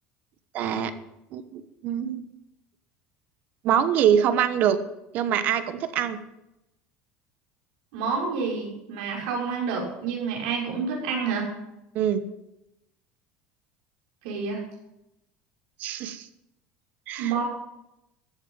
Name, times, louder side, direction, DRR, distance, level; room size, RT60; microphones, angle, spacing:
voice 1, 0.5-0.9 1.3-2.3 3.6-4.8 5.1-6.2 11.9-12.2 15.8-16.3 17.1-17.3, right 9 dB, 45° right, 12 dB, 1.2 m, -24 dB
voice 2, 7.9-11.5 14.2-14.6 17.2-17.4, right 5 dB, 85° right, -1 dB, 5.7 m, -28 dB
14.5 x 8.2 x 8.9 m, 0.89 s
cardioid pair, 160°, 4 cm